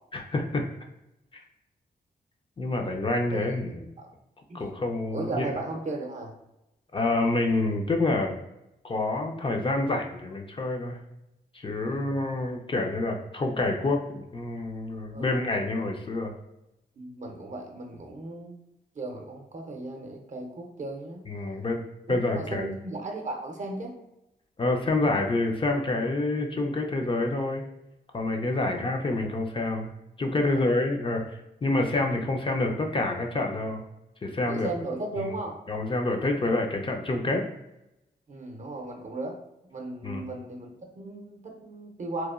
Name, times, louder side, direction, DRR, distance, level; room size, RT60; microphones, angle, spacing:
voice 1, 0.1-0.6 1.3-1.4 2.6-3.8 4.5-5.5 6.9-8.4 8.8-11.0 11.5-16.3 21.3-21.8 22.1-22.7 24.6-27.6 28.1-29.9 30.2-33.8 34.2-34.7 35.7-37.4 40.0-40.2, left 2 dB, 30° left, 2 dB, 0.4 m, -27 dB
voice 2, 5.1-6.3 11.7-12.2 15.1-15.5 17.0-18.5 18.9-21.2 22.1-23.9 28.6-28.8 30.4-30.7 34.5-35.6 38.3-39.4 39.7-42.3, right 2 dB, 45° right, 2 dB, 0.6 m, -36 dB
2.8 x 2.1 x 2.4 m, 0.89 s
cardioid pair, 75°, 17 cm